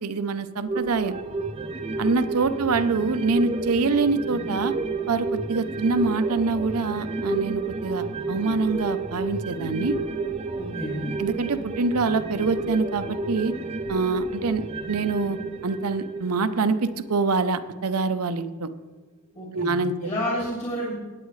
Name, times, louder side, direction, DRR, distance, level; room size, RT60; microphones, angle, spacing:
voice 1, 0.0-1.2 2.0-4.7 5.1-10.0 11.2-13.5 13.9-14.6 14.9-15.4 15.6-18.7 19.5-19.9, right 4 dB, 90° right, 11 dB, 0.7 m, -25 dB
sound 1, 0.7-17.5 17.8-17.9, right 3 dB, 25° right, 0.6 m, -31 dB
voice 2, 10.6-11.1 19.3-20.9, equal, 30° left, -6 dB, 2.7 m, -30 dB
17.5 x 9.3 x 3.2 m, 1.3 s
head